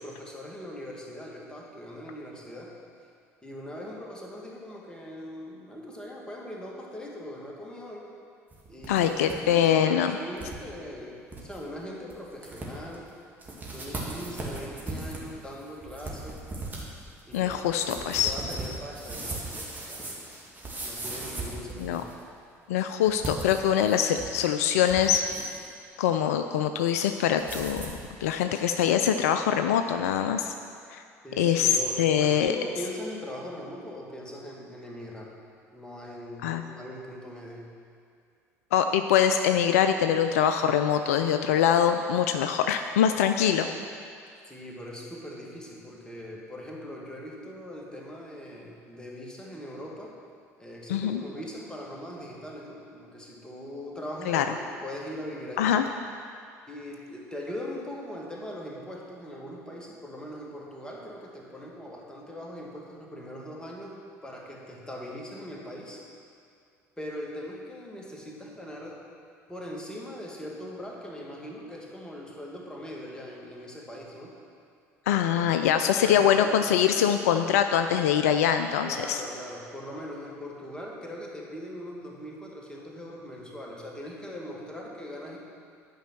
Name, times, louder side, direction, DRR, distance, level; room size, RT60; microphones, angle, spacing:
voice 1, 0.0-2.7 3.4-8.1 8.7-13.1 13.7-16.4 17.3-20.1 20.8-22.1 31.2-35.4 35.7-37.7 44.5-50.2 50.6-55.8 56.7-66.0 67.0-69.0 69.5-74.3 76.0-76.6 78.8-85.4, equal, 10° left, -2 dB, 2.0 m, -40 dB
sound 1, 8.5-9.4 9.7-9.8 10.4-10.6 11.0-11.1 11.3-11.6 12.1-12.2 12.4-12.9 13.4-22.2 23.1-24.4 24.7-25.7 27.4-28.0, right 2 dB, 20° right, 2.3 m, -38 dB
voice 2, 8.9-10.1 17.3-18.3 21.8-22.0 22.7-25.3 26.0-27.9 28.2-30.5 30.9-31.0 31.4-32.5 36.4-36.6 38.7-43.7 50.9-51.2 54.3-54.5 55.6-55.8 75.1-79.2, left 9 dB, 70° left, 7 dB, 0.4 m, -23 dB
11.0 x 5.4 x 6.0 m, 2.3 s
figure-of-eight pair, 60°, 8 cm